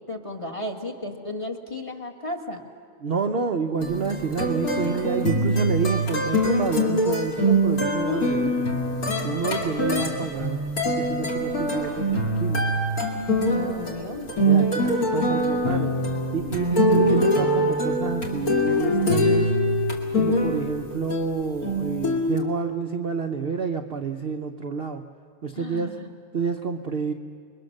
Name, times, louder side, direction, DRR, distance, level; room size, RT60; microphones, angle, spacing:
voice 1, 0.1-2.6 13.4-14.7 25.5-26.1, left 2 dB, 20° left, 3 dB, 1.4 m, -34 dB
voice 2, 3.0-8.7 9.2-12.6 14.4-15.9 16.3-19.5 20.2-25.1 25.4-25.9 26.3-27.1, right 5 dB, 50° right, 5 dB, 0.7 m, -29 dB
sound 1, 3.8-20.8 21.1-22.4, equal, 60° left, 2.7 m, -23 dB
29.0 x 22.0 x 6.5 m, 2.2 s
omnidirectional pair, 1.8 m